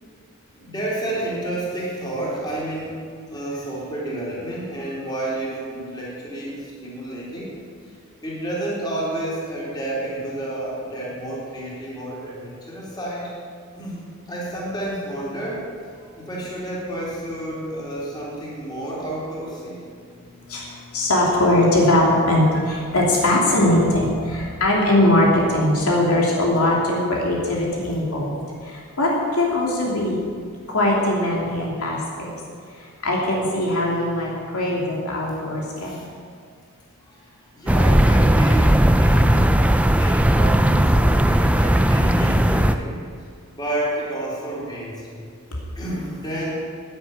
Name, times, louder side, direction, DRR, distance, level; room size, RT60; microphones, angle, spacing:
voice 1, 0.5-3.0 3.3-7.6 8.2-13.3 13.7-19.9 35.5-36.1 37.1-43.1 43.5-45.3 45.7-46.5, right 1 dB, 20° left, -6 dB, 4.1 m, -30 dB
voice 2, 20.5-28.4 28.6-30.2 30.7-32.3 33.0-36.0, left 1 dB, 70° left, -3 dB, 2.8 m, -20 dB
sound 1, 37.7-42.7, right 1 dB, 5° right, 0.4 m, -17 dB
11.5 x 10.0 x 8.7 m, 2.2 s
head